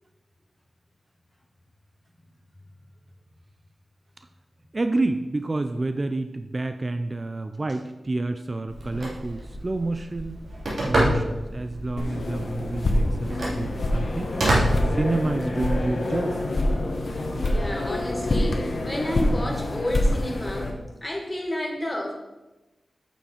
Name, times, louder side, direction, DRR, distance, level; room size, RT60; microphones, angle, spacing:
voice 1, 4.7-10.5 10.9-14.3 14.9-16.4, right 2 dB, 35° right, 8 dB, 0.4 m, -29 dB
Telephone, 8.7-15.7, right 1 dB, 65° right, 3.0 m, -28 dB
sound 1, 12.0-20.7, left 1 dB, 60° left, 1.4 m, -26 dB
voice 2, 17.4-20.7 21.0-22.1, left 1 dB, 15° left, 1 dB, 1.8 m, -31 dB
8.8 x 7.2 x 4.4 m, 1.0 s
wide cardioid pair, 80°, 0 cm